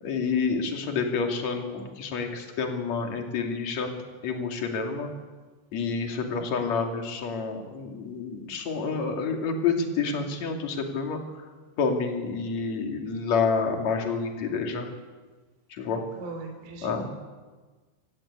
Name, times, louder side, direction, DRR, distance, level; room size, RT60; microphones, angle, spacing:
voice 1, 0.0-3.9 4.2-5.1 5.7-11.2 11.8-14.9 15.7-16.0 16.8-17.1, left 5 dB, 40° left, 3 dB, 3.1 m, -28 dB
voice 2, 16.1-17.1, right 3 dB, 60° right, 4 dB, 4.9 m, -40 dB
26.5 x 16.5 x 8.9 m, 1.3 s
omnidirectional pair, 5.8 m